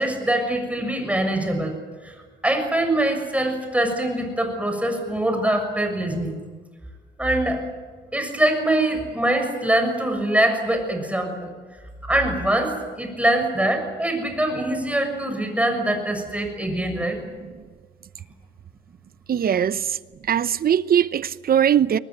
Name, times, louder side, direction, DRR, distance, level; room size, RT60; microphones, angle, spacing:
voice 1, 0.0-1.8 2.0-6.4 7.2-7.6 8.1-11.5 12.0-17.2, right 1 dB, 5° right, 6.7 m, -23 dB
voice 2, 19.3-20.0 20.3-22.0, right 9 dB, 50° right, 0.9 m, -20 dB
23.5 x 20.0 x 9.4 m
cardioid pair, 90°, 20 cm